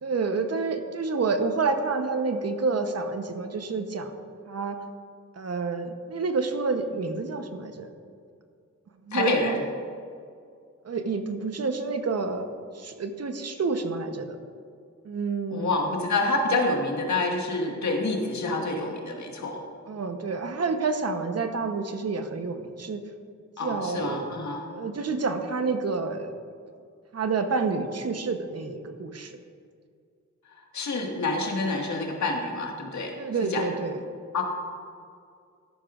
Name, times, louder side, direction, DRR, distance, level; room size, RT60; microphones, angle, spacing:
voice 1, 0.0-4.1 4.5-4.8 5.4-7.9 9.1-9.5 10.8-12.5 12.8-14.4 15.0-15.7 19.8-23.0 23.6-24.3 24.7-26.3 27.1-29.3 33.2-34.0, right 4 dB, 55° right, 7 dB, 1.0 m, -28 dB
voice 2, 9.1-9.6 15.5-19.6 23.6-24.7 30.7-33.1 33.4-33.7 34.3-34.4, left 2 dB, 65° left, 1 dB, 1.8 m, -27 dB
13.5 x 11.0 x 2.5 m, 2.3 s
cardioid pair, 75°, 31 cm